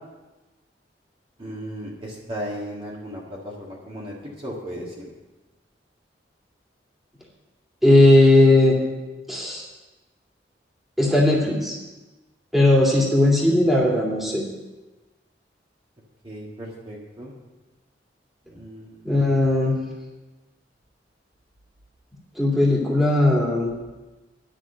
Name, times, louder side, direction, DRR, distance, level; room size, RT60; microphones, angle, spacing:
voice 1, 1.4-5.1 16.2-17.3 18.5-19.1, equal, 30° right, -4 dB, 1.8 m, -36 dB
voice 2, 7.8-8.8 9.3-9.7 11.0-11.8 12.5-14.5 19.0-19.8 22.4-23.7, left 2 dB, ahead, -3 dB, 2.3 m, -17 dB
11.0 x 6.3 x 8.7 m, 1.2 s
head